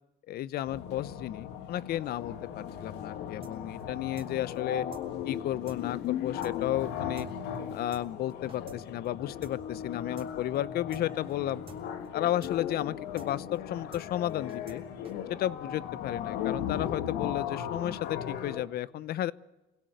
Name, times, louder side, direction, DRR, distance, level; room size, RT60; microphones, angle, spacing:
voice 1, 0.3-4.9 5.3-7.3 7.7-11.6 12.1-14.8 15.3-19.3, left 13 dB, 65° left, 20 dB, 0.8 m, -33 dB
sound 1, 0.7-18.7, left 9 dB, 90° left, 2.3 m, -37 dB
sound 2, 3.4-3.5 3.8-3.9 4.2-4.3 4.5-4.6 4.9-5.0 5.3-5.4 5.7-5.8 6.0-6.1 6.4-6.5 6.8-6.9 7.2-7.3 7.5-7.6 7.9-8.0 8.3-8.8 9.0-9.1 9.4-9.5 9.8-9.9 10.2-10.3 10.5-10.6 10.9-11.0 11.3-11.4 11.7-11.8 12.0-12.1 12.4-12.5 12.8-12.9 13.2-13.3 13.5-13.6 13.9-14.0 14.3-14.8 15.0-15.1, right 5 dB, 35° right, 3.8 m, -51 dB
26.5 x 17.5 x 9.3 m, 1.1 s
cardioid pair, 110°, 17 cm